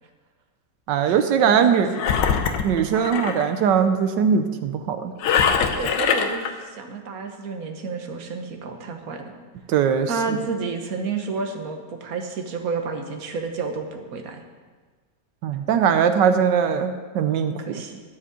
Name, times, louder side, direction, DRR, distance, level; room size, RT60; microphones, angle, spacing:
voice 1, 0.9-1.9 2.6-5.1 9.7-10.1 15.4-17.8, right 7 dB, 80° right, 8 dB, 1.3 m, -20 dB
voice 2, 1.4-1.8 3.1-3.3 5.7-9.3 10.1-14.4 17.6-18.0, right 4 dB, 55° right, 4 dB, 1.5 m, -31 dB
Engine, 1.9-3.5 5.2-6.5, left 6 dB, 80° left, 1.5 m, -22 dB
12.5 x 5.0 x 8.2 m, 1.4 s
omnidirectional pair, 1.9 m